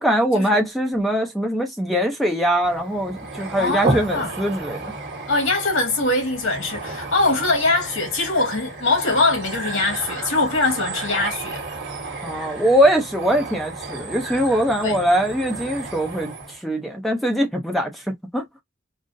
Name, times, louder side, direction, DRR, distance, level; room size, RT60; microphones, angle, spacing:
voice 1, 0.0-4.9 12.2-18.4, equal, ahead, 0.6 m, -22 dB
sound 1, 2.6-16.6, right 2 dB, 55° right, 1.3 m, -32 dB
voice 2, 3.4-4.3 5.3-11.6 14.8-15.0, left 2 dB, 75° left, 1.9 m, -22 dB
3.8 x 2.0 x 2.6 m
head